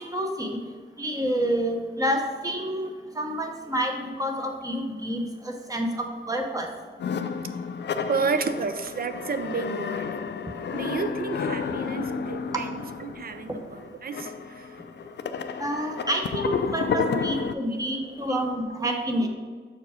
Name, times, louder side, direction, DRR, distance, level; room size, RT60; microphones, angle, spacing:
voice 1, 0.1-0.6 1.0-2.9 3.1-6.7 15.6-19.3, equal, 15° right, 2 dB, 0.8 m, -28 dB
sound 1, 7.0-17.5, left 6 dB, 55° left, 0.4 m, -31 dB
voice 2, 8.1-10.2 10.7-14.8 16.8-17.3 17.7-17.8 18.3-18.4 18.8-19.0, right 5 dB, 45° right, 9 dB, 0.5 m, -32 dB
6.8 x 4.7 x 5.0 m, 1.5 s
wide cardioid pair, 175°, 21 cm